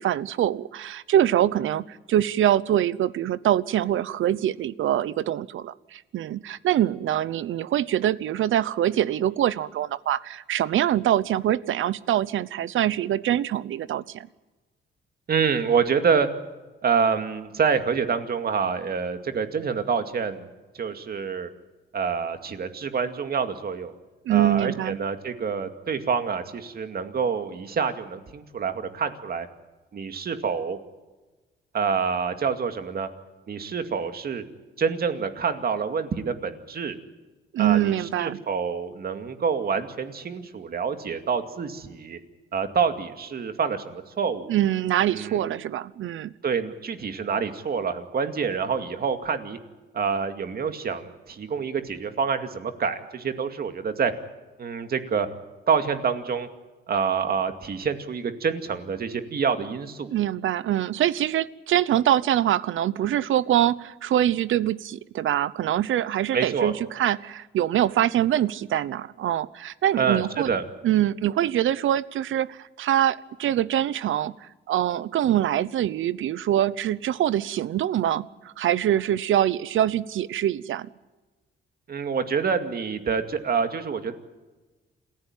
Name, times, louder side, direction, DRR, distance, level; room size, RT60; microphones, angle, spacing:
voice 1, 0.0-14.3 24.2-25.0 37.5-38.4 44.5-46.3 60.1-70.5 70.8-80.9, right 11 dB, 75° right, 18 dB, 0.9 m, -24 dB
voice 2, 15.3-16.3 16.8-20.5 20.7-21.5 21.9-23.9 24.3-29.5 29.9-30.8 31.7-33.1 33.5-34.4 34.8-37.0 37.6-42.2 42.5-44.5 45.1-45.5 46.4-49.6 49.9-54.1 54.6-55.3 55.7-56.5 56.9-60.1 66.3-66.7 70.0-70.6 81.9-84.1, right 6 dB, 50° right, 8 dB, 2.3 m, -27 dB
28.0 x 15.5 x 9.1 m, 1.2 s
cardioid pair, 115°, 20 cm